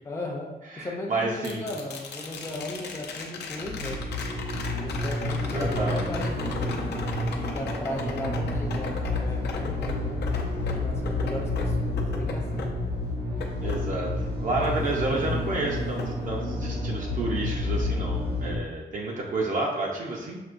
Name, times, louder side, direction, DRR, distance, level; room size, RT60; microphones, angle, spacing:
voice 1, 0.0-4.0 4.7-7.0 7.5-10.3 10.7-12.7, left 1 dB, 15° left, -1 dB, 0.5 m, -36 dB
voice 2, 0.7-1.6 5.4-6.1 13.6-20.4, right 2 dB, 50° right, -1 dB, 0.6 m, -30 dB
sound 1, 1.4-15.5 16.0-17.0 19.2-19.3, left 4 dB, 80° left, 0.6 m, -38 dB
sound 2, 3.6-18.6, left 2 dB, 75° right, 1.0 m, -30 dB
5.9 x 2.8 x 2.5 m, 1.1 s
wide cardioid pair, 155°, 17 cm